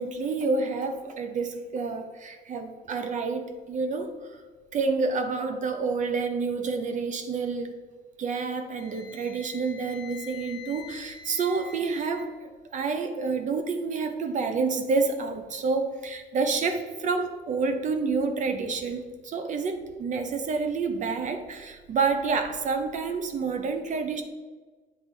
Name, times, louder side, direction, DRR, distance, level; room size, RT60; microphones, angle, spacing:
voice 1, 0.0-4.2 4.7-7.7 8.2-24.2, right 4 dB, 45° right, 7 dB, 0.8 m, -28 dB
Wind instrument woodwind instrument, 8.7-12.3, left 6 dB, 55° left, 1.3 m, -45 dB
8.2 x 4.0 x 4.5 m, 1.4 s
cardioid pair, 110°, 17 cm